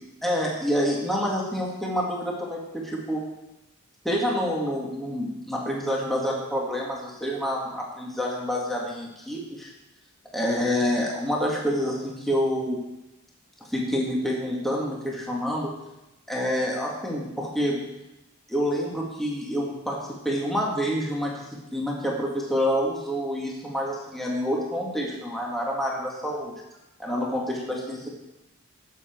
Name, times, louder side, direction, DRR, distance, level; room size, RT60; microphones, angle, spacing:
voice 1, 0.2-3.2 4.0-9.7 10.3-12.8 13.7-15.7 16.3-17.8 18.5-20.0 20.2-21.4 21.7-26.5 27.0-28.1, equal, ahead, -4 dB, 2.3 m, -27 dB
19.0 x 7.5 x 4.7 m, 0.95 s
head